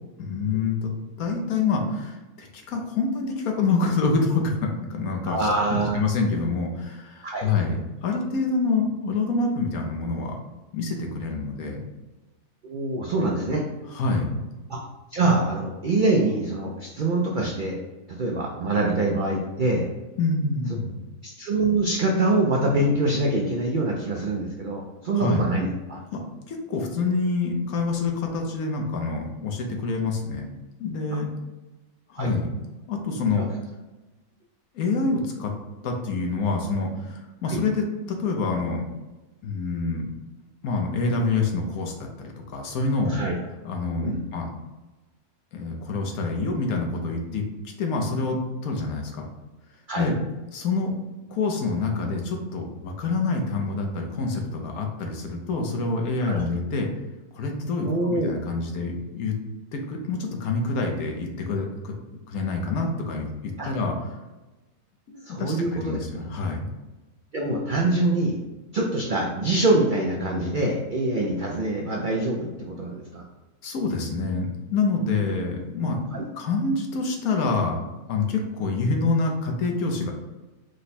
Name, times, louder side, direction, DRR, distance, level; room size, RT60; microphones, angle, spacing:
voice 1, 0.2-10.4 10.7-11.8 13.9-14.4 20.2-21.0 25.1-25.4 26.1-26.2 26.5-30.5 30.8-31.3 32.1-32.5 32.9-33.5 34.7-35.5 35.8-38.8 39.4-40.1 40.4-43.2 43.6-44.5 45.5-47.4 47.8-49.2 50.0-50.2 50.5-50.9 51.3-56.9 57.3-59.4 59.7-62.0 62.3-63.9 65.1-66.7 73.6-76.0 76.3-77.8 78.1-80.1, left 3 dB, 75° left, 2 dB, 1.2 m, -27 dB
voice 2, 5.3-6.0 7.2-7.5 12.6-13.6 14.7-14.8 15.1-17.8 18.1-19.9 21.2-26.0 32.2-32.3 33.4-33.5 37.5-37.6 43.1-43.4 44.0-44.2 49.9-50.1 56.3-56.4 57.8-58.3 63.6-63.7 65.2-66.0 67.3-68.4 68.7-73.2 75.4-75.6 76.1-76.2, right 2 dB, 70° right, -1 dB, 0.4 m, -24 dB
5.1 x 2.2 x 4.1 m, 1.1 s
omnidirectional pair, 1.6 m